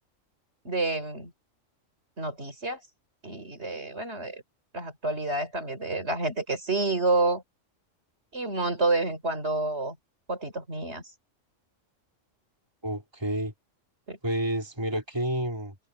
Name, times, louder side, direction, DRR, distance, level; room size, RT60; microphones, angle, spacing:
voice 1, 0.6-1.3 2.2-2.8 3.2-4.4 4.7-7.4 8.3-10.0 10.3-11.1 14.1-14.2, right 2 dB, 55° right, 4.7 m, -29 dB
voice 2, 12.8-13.5 14.2-15.8, right 1 dB, 20° right, 3.8 m, -29 dB
omnidirectional pair, 1.3 m